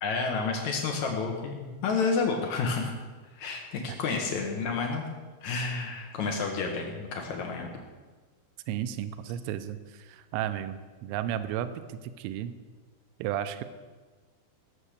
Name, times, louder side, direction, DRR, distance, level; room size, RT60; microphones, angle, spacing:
voice 1, 0.0-2.9 3.3-5.0 5.4-7.7, left 4 dB, 85° left, 1 dB, 1.6 m, -30 dB
voice 2, 8.7-12.6 13.2-13.6, right 10 dB, 85° right, 10 dB, 3.1 m, -33 dB
18.0 x 7.4 x 6.7 m, 1.4 s
omnidirectional pair, 5.6 m